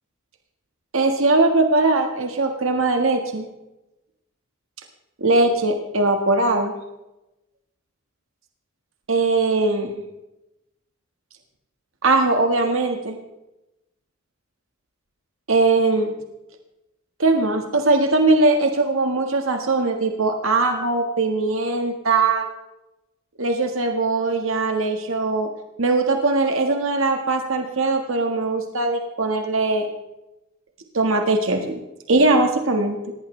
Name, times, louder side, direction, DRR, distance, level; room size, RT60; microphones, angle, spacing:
voice 1, 0.9-3.5 5.2-6.7 9.1-10.0 12.0-13.2 15.5-16.1 17.2-22.4 23.4-25.5 25.8-29.9 30.9-31.8 32.1-33.0, right 3 dB, 70° right, 4 dB, 1.6 m, -20 dB
19.0 x 17.5 x 3.3 m, 0.93 s
head